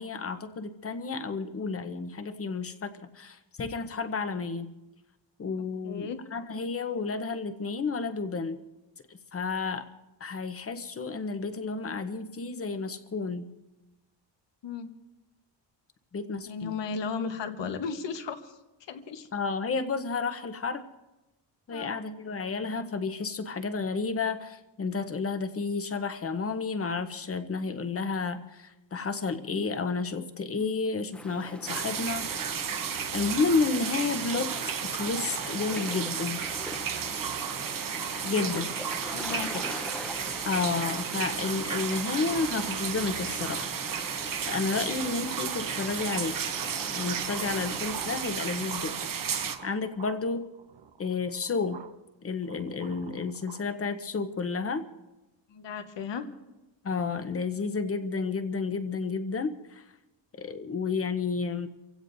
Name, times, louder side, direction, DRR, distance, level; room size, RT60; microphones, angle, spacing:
voice 1, 0.0-4.7 5.4-8.6 9.1-9.9 10.2-13.5 16.1-16.7 19.3-20.9 21.7-32.3 32.9-34.5 34.8-36.4 38.2-38.7 40.4-44.1 44.5-46.4 46.9-49.1 49.6-50.5 51.0-51.8 52.2-54.9 56.8-59.8 60.3-61.7, left 4 dB, 30° left, 9 dB, 0.9 m, -31 dB
voice 2, 5.8-6.2 14.6-14.9 16.5-19.3 21.7-21.9 38.3-38.7 39.1-39.7 47.5-47.7 55.5-56.3, left 5 dB, 70° left, 7 dB, 1.3 m, -35 dB
sound 1, 31.1-48.2, equal, 5° left, 0.8 m, -43 dB
sound 2, 31.7-49.6, right 7 dB, 50° right, 0.9 m, -33 dB
sound 3, 46.4-51.9 52.4-53.6, right 9 dB, 70° right, 1.0 m, -44 dB
30.0 x 16.0 x 2.7 m, 1.1 s
wide cardioid pair, 165°, 44 cm